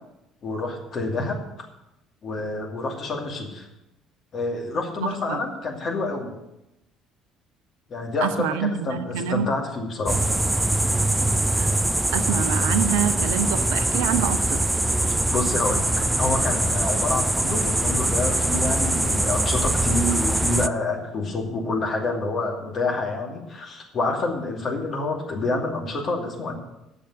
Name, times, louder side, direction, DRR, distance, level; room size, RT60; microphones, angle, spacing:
voice 1, 0.4-1.4 2.2-3.7 4.3-6.3 7.9-10.2 15.2-26.5, left 2 dB, 45° left, 0 dB, 2.6 m, -27 dB
voice 2, 5.0-5.4 8.2-9.5 11.6-11.7 12.1-14.6, right 9 dB, 65° right, 11 dB, 0.6 m, -26 dB
sound 1, 10.1-20.7, right 2 dB, 10° right, 0.4 m, -23 dB
8.9 x 6.9 x 8.7 m, 0.90 s
figure-of-eight pair, 55°, 0 cm